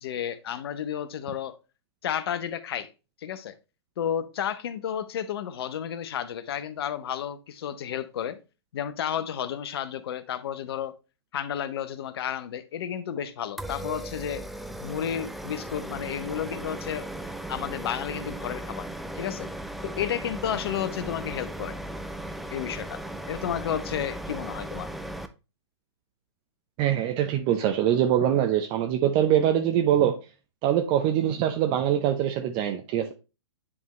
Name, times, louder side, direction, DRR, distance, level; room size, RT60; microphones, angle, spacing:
voice 1, 0.0-1.6 2.0-2.9 3.2-3.6 4.0-8.4 8.7-10.9 11.3-14.4 14.8-17.1 17.5-18.9 19.1-19.5 19.8-21.8 22.5-23.0 23.3-24.9, left 9 dB, 60° left, 0.8 m, -32 dB
sound 1, 13.6-25.3, right 1 dB, ahead, 0.4 m, -37 dB
voice 2, 26.8-30.1 30.6-33.1, right 10 dB, 35° right, 0.7 m, -23 dB
9.7 x 3.6 x 3.1 m
hypercardioid pair, 120°, 14 cm